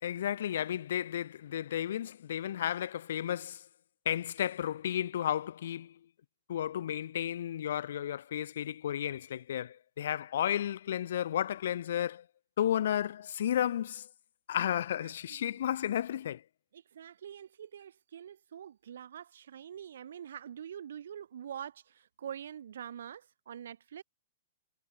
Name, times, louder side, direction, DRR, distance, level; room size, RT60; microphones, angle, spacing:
voice 1, 0.0-3.6 4.0-5.9 6.5-12.2 12.6-14.1 14.5-16.4, left 10 dB, 65° left, 2.9 m, -33 dB
voice 2, 14.9-15.6 16.7-24.0, right 9 dB, 70° right, 2.9 m, -45 dB
hypercardioid pair, 115°, 0 cm